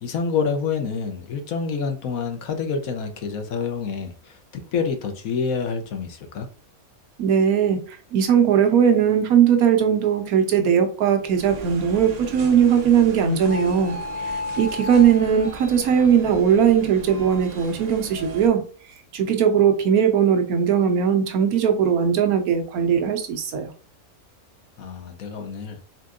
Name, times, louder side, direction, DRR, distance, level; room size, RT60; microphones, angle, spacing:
voice 1, 0.0-6.5 24.8-25.8, left 5 dB, 75° left, 1.2 m, -27 dB
voice 2, 7.2-14.0 14.2-18.6 19.1-23.7, right 8 dB, 85° right, 1.2 m, -19 dB
sound 1, 11.2-18.5, equal, 65° right, 0.4 m, -35 dB
4.3 x 3.7 x 2.5 m
omnidirectional pair, 1.5 m